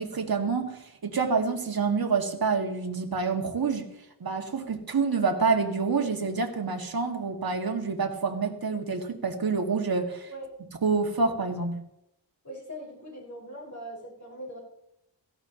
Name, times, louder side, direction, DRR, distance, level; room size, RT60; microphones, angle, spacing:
voice 1, 0.0-3.9 4.2-10.3 10.8-11.8, right 4 dB, 55° right, 3 dB, 2.0 m, -27 dB
voice 2, 12.4-14.6, equal, 40° left, -2 dB, 5.2 m, -41 dB
17.5 x 16.0 x 2.9 m, 0.82 s
wide cardioid pair, 95°, 43 cm